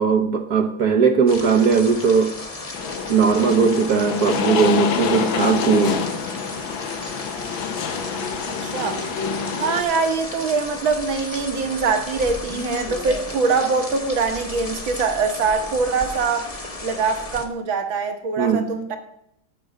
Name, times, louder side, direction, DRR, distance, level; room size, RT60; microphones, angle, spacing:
voice 1, 0.0-2.3 3.1-6.1 18.4-18.7, right 5 dB, 55° right, 1.2 m, -18 dB
sound 1, 1.3-17.5, left 2 dB, 25° left, 0.9 m, -34 dB
sound 2, 2.7-9.8, left 6 dB, 70° left, 1.7 m, -27 dB
voice 2, 8.5-9.0 9.6-16.5 16.8-19.0, right 4 dB, 70° right, 2.3 m, -23 dB
13.5 x 6.2 x 6.3 m
omnidirectional pair, 2.2 m